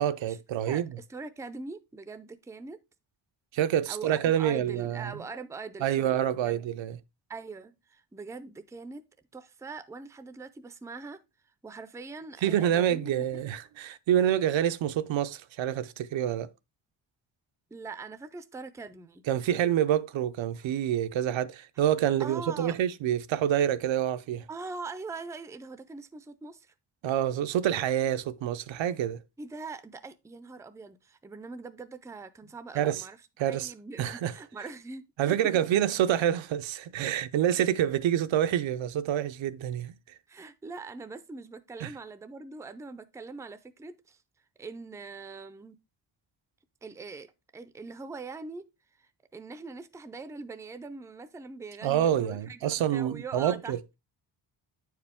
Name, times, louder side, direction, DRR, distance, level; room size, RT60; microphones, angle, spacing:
voice 1, 0.0-0.9 3.5-5.2 5.8-7.0 12.4-16.5 19.3-24.5 27.0-29.2 32.8-33.0 33.4-33.7 34.0-34.3 35.2-39.9 41.8-41.9 51.8-53.8, right 10 dB, 85° right, 0.7 m, -27 dB
voice 2, 0.6-2.8 3.9-6.6 7.3-9.1 9.3-11.2 11.6-13.3 17.7-19.2 22.2-22.8 24.5-26.7 29.4-33.2 33.5-35.6 40.3-44.2 44.6-45.8 46.8-48.7 49.0-53.9, right 4 dB, 5° right, 0.4 m, -42 dB
9.4 x 4.8 x 3.5 m
wide cardioid pair, 155°, 44 cm